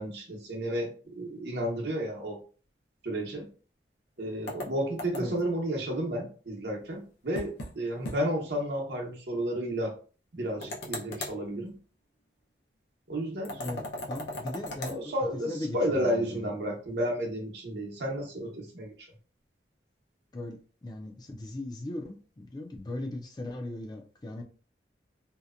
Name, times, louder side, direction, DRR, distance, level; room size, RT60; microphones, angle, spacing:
voice 1, 0.0-2.4 3.0-3.5 4.2-9.9 10.3-11.7 13.1-13.6 14.9-18.9, equal, 75° right, 0 dB, 0.8 m, -32 dB
sound 1, 4.5-5.5 7.3-7.7 8.0-8.2 8.5-8.6 10.6-11.4 13.4-15.0, left 1 dB, 85° left, 0.6 m, -38 dB
voice 2, 13.6-15.1 15.5-16.5 20.3-24.4, left 1 dB, 25° left, 3 dB, 0.4 m, -38 dB
2.8 x 2.1 x 2.4 m, 0.39 s
head